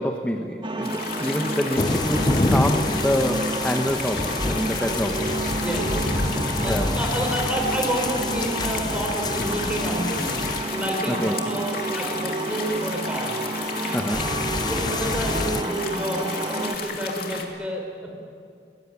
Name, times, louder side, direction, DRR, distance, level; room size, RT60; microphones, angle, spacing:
voice 1, 0.0-5.3 6.7-6.9 11.1-11.4 13.9-14.2, equal, 10° left, 4 dB, 1.1 m, -26 dB
sound 1, 0.6-16.8, right 2 dB, 30° right, 1.6 m, -30 dB
sound 2, 0.8-17.4, left 5 dB, 55° left, 2.8 m, -34 dB
sound 3, 1.8-10.6 14.1-15.6, left 2 dB, 25° left, 0.6 m, -27 dB
voice 2, 5.5-6.4 6.6-10.3 10.7-13.3 13.8-14.2 14.6-18.1, right 1 dB, 5° right, 0 dB, 5.2 m, -29 dB
22.5 x 19.0 x 9.7 m, 2.4 s
head